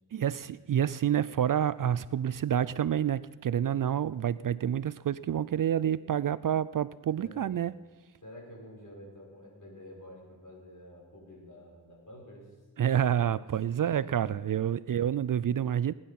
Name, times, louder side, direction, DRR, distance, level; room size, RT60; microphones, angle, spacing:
voice 1, 0.1-7.8 12.8-15.9, right 9 dB, 55° right, 17 dB, 0.4 m, -28 dB
voice 2, 7.1-7.5 8.2-13.4 13.6-14.9, equal, 50° left, -1 dB, 6.0 m, -50 dB
19.5 x 10.5 x 5.9 m, 1.4 s
wide cardioid pair, 80°, 39 cm